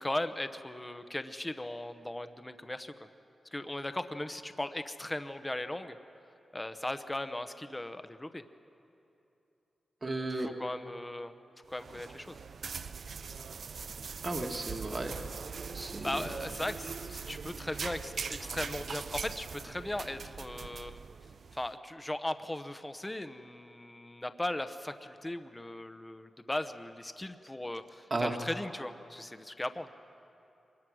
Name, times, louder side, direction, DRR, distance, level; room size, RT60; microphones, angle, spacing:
voice 1, 0.0-3.1 3.5-6.0 6.5-8.4 10.3-11.3 11.7-12.4 15.8-21.0 21.5-29.9, left 1 dB, 15° left, 10 dB, 0.8 m, -38 dB
voice 2, 10.0-10.5 14.2-15.1 15.7-16.2 28.1-28.3, right 2 dB, 35° right, 2 dB, 1.5 m, -34 dB
sound 1, 11.7-21.7, right 5 dB, 65° right, 0.5 m, -41 dB
24.0 x 20.5 x 6.2 m, 2.8 s
wide cardioid pair, 90°, 0 cm